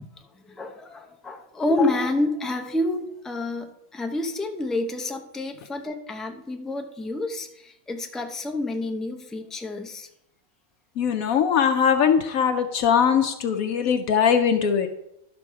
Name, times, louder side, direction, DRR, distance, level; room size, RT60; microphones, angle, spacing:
voice 1, 0.5-10.1, left 2 dB, ahead, 4 dB, 0.4 m, -28 dB
voice 2, 11.0-14.9, left 7 dB, 75° left, 6 dB, 1.1 m, -21 dB
11.5 x 6.2 x 4.6 m, 0.84 s
omnidirectional pair, 1.5 m